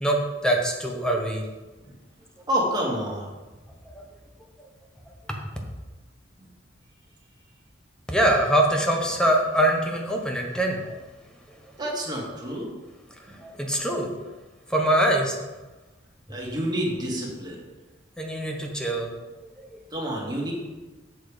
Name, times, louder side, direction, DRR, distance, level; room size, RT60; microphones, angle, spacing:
voice 1, 0.0-1.4 3.9-4.0 8.1-10.9 13.4-14.1 14.7-15.4 18.2-19.1 19.6-19.8, right 1 dB, 5° left, 1 dB, 1.1 m, -23 dB
voice 2, 2.5-3.3 11.8-12.7 16.3-17.6 19.9-20.5, equal, 20° right, -3 dB, 2.0 m, -28 dB
6.7 x 6.3 x 5.0 m, 1.2 s
head